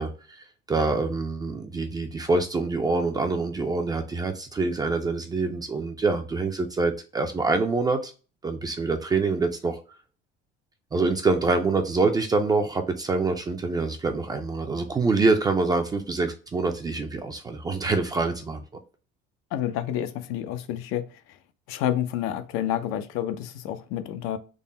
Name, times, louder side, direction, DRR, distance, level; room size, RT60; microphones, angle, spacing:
voice 1, 0.0-8.1 8.4-9.8 10.9-18.6, right 3 dB, 20° right, 0.3 m, -25 dB
voice 2, 19.5-21.1 21.7-24.4, left 11 dB, 80° left, 0.5 m, -29 dB
3.7 x 2.0 x 4.0 m
cardioid pair, 140°, 21 cm